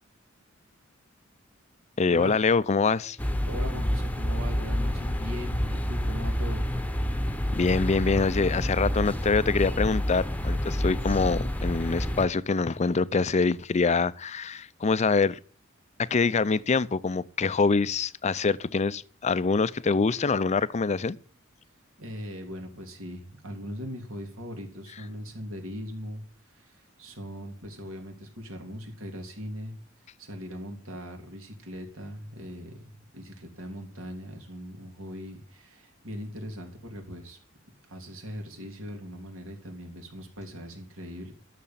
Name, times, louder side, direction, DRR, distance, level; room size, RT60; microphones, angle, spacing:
voice 1, 2.0-3.2 7.5-15.4 16.0-21.2, left 4 dB, 35° left, 0.5 m, -25 dB
sound 1, 3.2-12.3, equal, 10° left, 1.0 m, -28 dB
voice 2, 3.5-6.7 22.0-26.2 26.5-29.8 30.2-32.8 33.1-37.4 37.9-41.3, equal, 75° right, 3.3 m, -40 dB
12.5 x 6.8 x 7.4 m
head